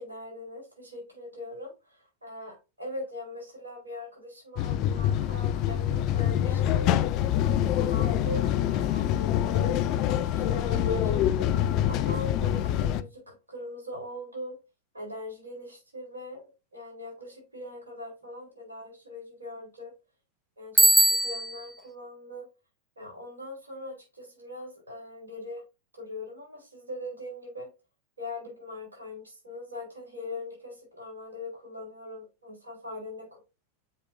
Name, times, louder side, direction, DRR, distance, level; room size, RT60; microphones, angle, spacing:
voice 1, 0.0-7.0 7.7-14.6 14.9-19.9 20.6-22.5 23.0-25.6 26.0-27.7 28.2-33.4, left 1 dB, 80° right, -2 dB, 3.8 m, -41 dB
sound 1, 4.6-13.0, left 11 dB, 40° left, 0.5 m, -25 dB
Bicycle bell, 20.8-21.7, right 2 dB, 10° right, 0.5 m, -21 dB
7.9 x 5.0 x 2.6 m, 0.27 s
figure-of-eight pair, 90°, 0 cm